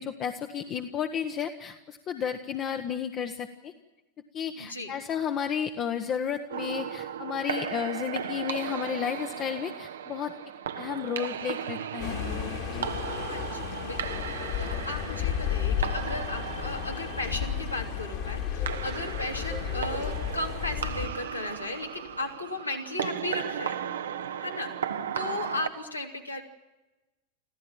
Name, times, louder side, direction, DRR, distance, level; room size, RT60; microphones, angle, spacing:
voice 1, 0.0-3.7 4.3-10.3 10.8-12.2 12.7-12.9, left 8 dB, 30° left, 6 dB, 1.2 m, -32 dB
voice 2, 4.5-4.9 13.2-23.8 24.4-24.7 25.1-26.4, left 2 dB, 85° left, 2 dB, 3.0 m, -35 dB
sound 1, 6.5-25.7, right 8 dB, 65° right, 1.1 m, -36 dB
sound 2, 12.0-21.1, left 9 dB, 50° left, 2.6 m, -33 dB
sound 3, 15.9-22.3, right 2 dB, 5° right, 1.5 m, -50 dB
26.5 x 15.5 x 8.9 m, 1.1 s
figure-of-eight pair, 90°, 0 cm